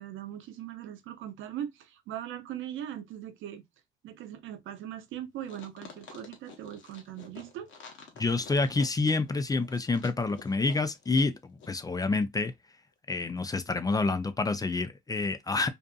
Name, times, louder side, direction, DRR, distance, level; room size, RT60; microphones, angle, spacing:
voice 1, 0.0-3.6 4.0-7.7, right 11 dB, 80° right, 0.5 m, -40 dB
sound 1, 5.4-11.3 11.6-11.7, left 6 dB, 70° left, 0.9 m, -49 dB
voice 2, 8.2-12.5 13.1-15.7, left 3 dB, 20° left, 0.3 m, -28 dB
2.6 x 2.4 x 2.2 m
cardioid pair, 90°, 20 cm